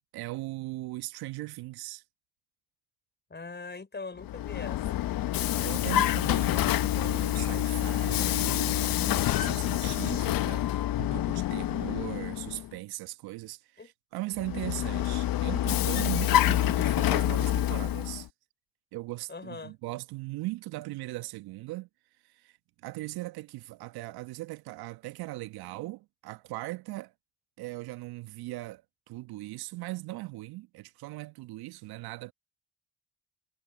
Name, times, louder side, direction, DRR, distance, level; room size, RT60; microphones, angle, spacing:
voice 1, 0.1-2.0 5.5-18.3 18.9-21.9 22.2-22.6 22.8-27.1 27.6-32.3, right 19 dB, 65° right, 1.5 m, -39 dB
voice 2, 3.3-4.8 13.8-13.9 19.3-19.7, left 4 dB, 25° left, 6.0 m, -41 dB
Vehicle, 4.2-12.7 14.4-18.3, left 13 dB, 55° left, 1.3 m, -27 dB
hypercardioid pair, 50°, 40 cm